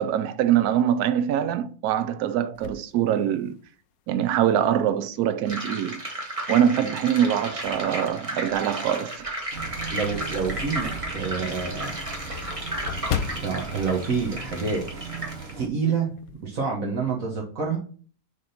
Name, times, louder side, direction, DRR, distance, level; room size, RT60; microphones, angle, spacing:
voice 1, 0.0-3.6 4.1-6.0 6.5-9.4, right 10 dB, 85° right, 1.1 m, -23 dB
sound 1, 2.5-3.9 4.4-4.5 6.0-6.5 7.0-9.6 10.1-10.2 10.6-10.7 11.0-11.1 11.3-15.1 15.3-15.6 15.9-16.5, left 9 dB, 75° left, 1.0 m, -37 dB
sound 2, 5.5-15.5, right 1 dB, 20° right, 1.4 m, -34 dB
Bus, 9.5-15.7, right 4 dB, 40° right, 1.5 m, -37 dB
voice 2, 9.9-12.0 13.3-14.8 15.6-17.8, right 5 dB, 65° right, 1.7 m, -28 dB
6.8 x 3.7 x 5.6 m
omnidirectional pair, 1.6 m